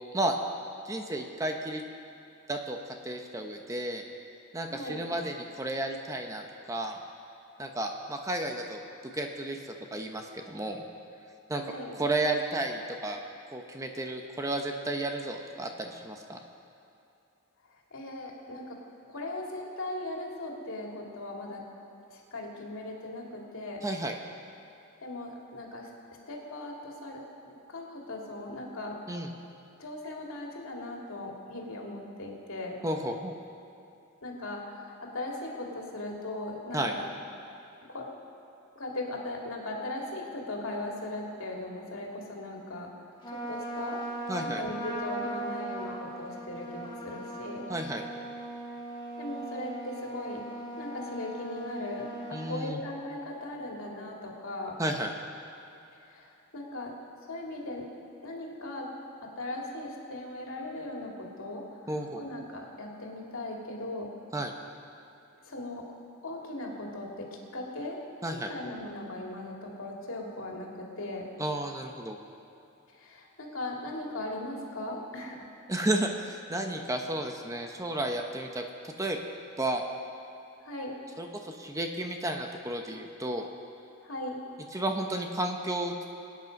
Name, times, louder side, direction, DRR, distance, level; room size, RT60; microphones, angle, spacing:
voice 1, 0.8-1.8 2.5-2.8 3.0-4.0 4.5-6.4 6.7-7.0 7.6-10.8 11.5-11.6 11.9-13.2 13.5-16.4 23.8-24.1 29.1-29.3 32.8-33.3 36.7-36.9 44.3-44.6 47.7-48.0 52.3-52.8 54.8-55.1 61.9-62.3 64.3-64.5 68.2-68.5 71.4-72.2 75.7-79.2 79.6-79.8 81.2-83.5 84.7-86.1, right 1 dB, 15° right, 3 dB, 0.8 m, -32 dB
voice 2, 4.7-5.0 11.5-11.9 17.9-18.8 19.1-21.6 22.1-23.8 25.0-25.9 26.3-29.0 29.8-32.8 34.2-37.0 37.9-38.1 38.8-42.9 43.3-44.0 44.4-47.6 49.2-50.5 50.8-54.8 56.1-56.3 56.5-56.9 57.3-57.9 58.2-58.9 59.2-61.6 62.2-64.1 65.5-65.8 66.2-67.3 67.5-68.0 68.3-71.3 73.0-75.4 80.6-80.9 84.0-84.4, left 2 dB, 70° left, -1 dB, 2.5 m, -38 dB
Trumpet, 43.2-52.6, right 1 dB, 20° left, 1.6 m, -38 dB
24.0 x 9.4 x 5.3 m, 2.8 s
head